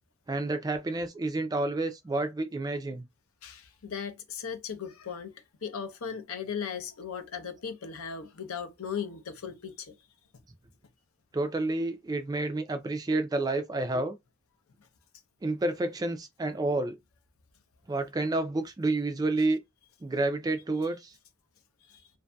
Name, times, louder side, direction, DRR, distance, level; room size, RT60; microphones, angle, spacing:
voice 1, 0.3-3.0 11.3-14.1 15.4-17.0 17.9-19.6 20.0-21.0, right 2 dB, 20° right, 0.3 m, -29 dB
voice 2, 3.4-9.9 21.9-22.0, left 7 dB, 80° left, 0.6 m, -37 dB
2.6 x 2.5 x 2.2 m
head